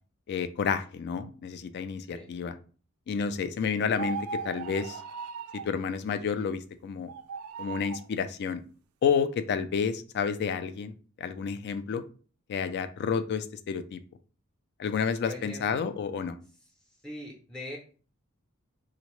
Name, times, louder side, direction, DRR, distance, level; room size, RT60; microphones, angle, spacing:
voice 1, 0.3-2.6 3.1-5.0 5.6-7.1 7.6-8.6 9.0-12.0 12.5-14.0 14.8-16.4, left 6 dB, 50° left, 12 dB, 0.3 m, -30 dB
sound 1, 3.9-5.7 7.0-8.1, right 5 dB, 80° right, 0.3 m, -38 dB
voice 2, 15.2-15.9 17.0-17.8, left 1 dB, 5° left, -2 dB, 0.5 m, -41 dB
3.7 x 2.1 x 3.0 m, 0.39 s
head